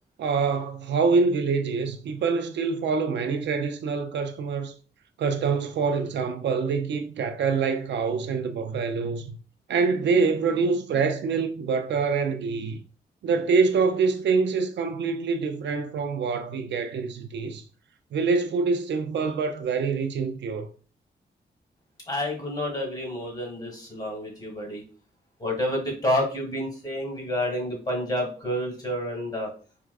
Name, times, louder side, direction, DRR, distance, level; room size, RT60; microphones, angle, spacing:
voice 1, 0.2-4.7 5.2-9.4 9.7-12.8 13.2-17.6 18.1-20.7, right 5 dB, 80° right, 0.4 m, -25 dB
voice 2, 22.1-24.8 25.4-29.5, left 1 dB, 20° left, 1.6 m, -29 dB
4.6 x 2.2 x 2.3 m
cardioid pair, 80°, 18 cm